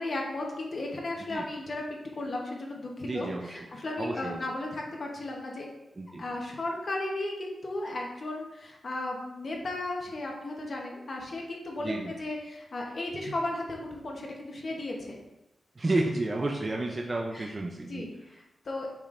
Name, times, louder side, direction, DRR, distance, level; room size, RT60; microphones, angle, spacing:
voice 1, 0.0-1.9 2.1-5.7 6.2-15.2 17.3-17.5 17.9-19.0, left 2 dB, 40° left, -1 dB, 0.9 m, -35 dB
voice 2, 3.0-3.5 4.0-4.4 6.0-6.2 11.8-12.1 15.8-18.1, right 2 dB, 25° right, 1 dB, 0.5 m, -31 dB
7.2 x 5.1 x 2.5 m, 0.91 s
wide cardioid pair, 175°, 0 cm